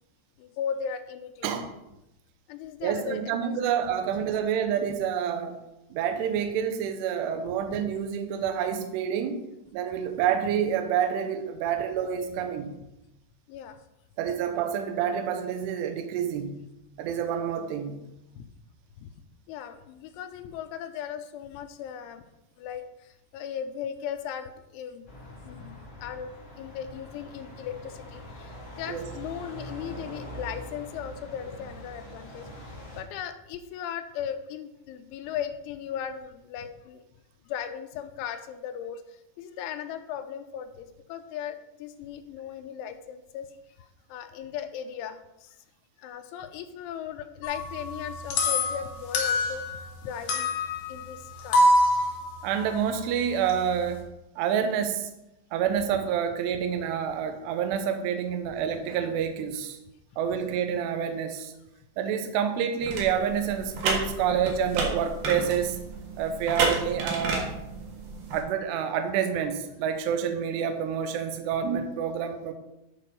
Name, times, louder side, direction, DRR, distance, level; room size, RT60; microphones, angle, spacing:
voice 1, 0.4-1.5 2.5-3.9 13.5-13.8 18.4-18.5 19.0-19.1 19.5-22.2 22.6-25.0 25.5-37.0 37.5-43.5 43.8-45.6 46.0-49.6 50.0-50.6 50.9-51.8, left 8 dB, 85° left, 8 dB, 3.1 m, -37 dB
voice 2, 2.8-5.6 5.9-9.4 9.7-12.7 14.2-16.6 17.0-18.0 28.9-29.1 52.4-54.0 54.4-55.1 55.5-59.8 60.2-61.5 62.0-65.8 66.2-67.5 68.3-72.5, right 8 dB, 75° right, 7 dB, 2.7 m, -28 dB
sound 1, 25.1-33.0, equal, 30° left, 2.6 m, -43 dB
sound 2, 47.4-50.0 50.3-54.0, left 1 dB, 65° left, 2.0 m, -26 dB
sound 3, 62.8-68.4, right 3 dB, 60° right, 3.2 m, -31 dB
11.0 x 4.6 x 5.4 m, 0.89 s
omnidirectional pair, 5.5 m